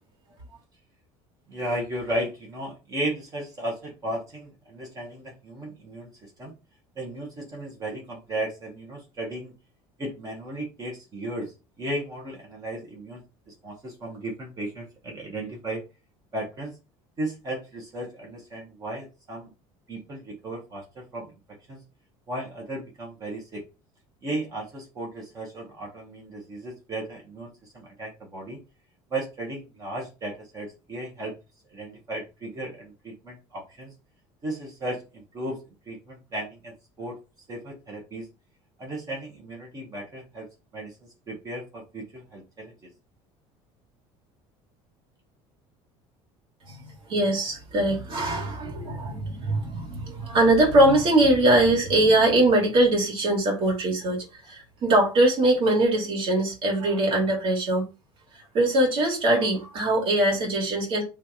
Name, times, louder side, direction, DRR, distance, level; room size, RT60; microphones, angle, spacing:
voice 1, 1.5-6.5 7.0-9.5 10.0-15.8 16.3-16.7 17.2-19.5 19.9-21.3 21.7-21.8 22.3-23.6 24.2-28.6 29.1-31.3 31.7-33.9 34.4-35.6 35.9-37.2 37.5-38.3 38.8-40.5 40.7-41.0 41.3-42.9, right 1 dB, 25° right, 1.0 m, -35 dB
voice 2, 46.6-57.8 58.5-61.0, right 1 dB, 45° right, 1.7 m, -22 dB
3.2 x 2.4 x 4.0 m
cardioid pair, 160°, 13 cm